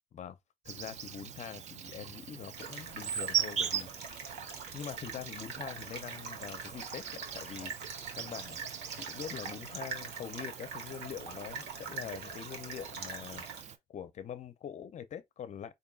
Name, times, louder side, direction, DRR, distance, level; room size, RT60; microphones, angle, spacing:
voice 1, 0.6-4.3 4.7-8.6 8.9-13.5 13.9-15.7, left 9 dB, 45° left, 0.5 m, -44 dB
Insect, 0.7-13.8, right 9 dB, 45° right, 0.5 m, -41 dB
sound 1, 2.5-13.6, right 5 dB, 80° right, 1.2 m, -43 dB
5.1 x 2.6 x 2.3 m
cardioid pair, 110°, 17 cm